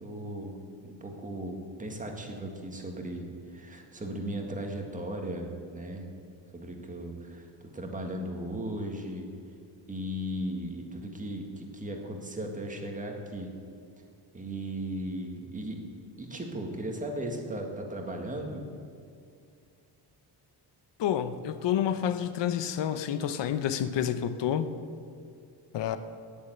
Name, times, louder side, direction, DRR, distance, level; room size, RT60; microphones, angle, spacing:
voice 1, 0.0-0.6 0.8-6.1 6.5-7.5 7.7-9.3 9.9-13.5 14.3-15.8 16.2-18.6, right 1 dB, 20° right, 2 dB, 1.8 m, -36 dB
voice 2, 21.0-24.7 25.7-26.0, left 9 dB, 80° left, 11 dB, 0.9 m, -29 dB
18.0 x 7.2 x 9.5 m, 2.4 s
cardioid pair, 165°, 42 cm